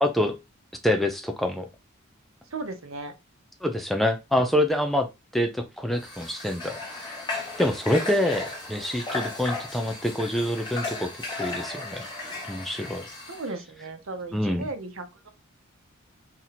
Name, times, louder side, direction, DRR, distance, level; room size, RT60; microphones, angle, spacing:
voice 1, 0.0-0.3 0.8-1.7 3.6-5.1 5.3-6.8 7.6-11.1 11.4-12.1 12.5-13.1 14.3-14.7, left 1 dB, ahead, 0.4 m, -26 dB
voice 2, 2.5-3.1 13.3-15.3, right 3 dB, 70° right, 0.8 m, -36 dB
Water / Water tap faucet, 6.0-13.5, left 3 dB, 20° left, 1.2 m, -35 dB
3.0 x 2.7 x 4.0 m
head